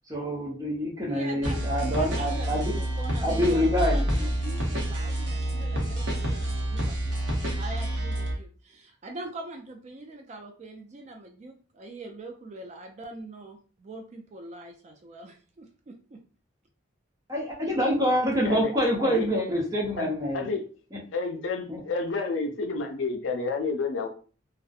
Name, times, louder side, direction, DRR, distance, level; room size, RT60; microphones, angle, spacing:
voice 1, 0.1-2.7 3.2-4.0 17.3-20.5 20.9-21.0 21.7-21.8, equal, 20° right, -2 dB, 0.7 m, -26 dB
voice 2, 1.1-7.0 7.6-16.2, right 2 dB, 35° right, 4 dB, 0.3 m, -43 dB
sound 1, 1.4-8.4, right 1 dB, 65° right, 0.8 m, -28 dB
voice 3, 21.1-24.1, left 4 dB, 75° left, 4 dB, 0.5 m, -30 dB
2.6 x 2.1 x 2.3 m, 0.39 s
head